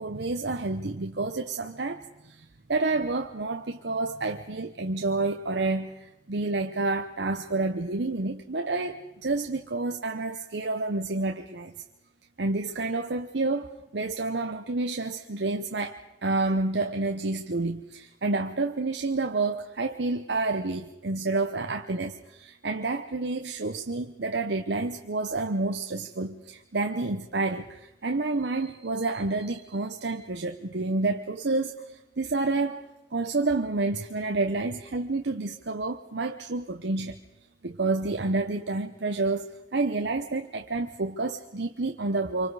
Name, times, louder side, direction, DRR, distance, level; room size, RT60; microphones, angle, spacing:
voice 1, 0.0-11.7 12.4-31.8 32.2-32.8 33.1-37.2 37.6-42.5, right 3 dB, 65° right, 0.9 m, -29 dB
27.5 x 25.0 x 4.9 m
head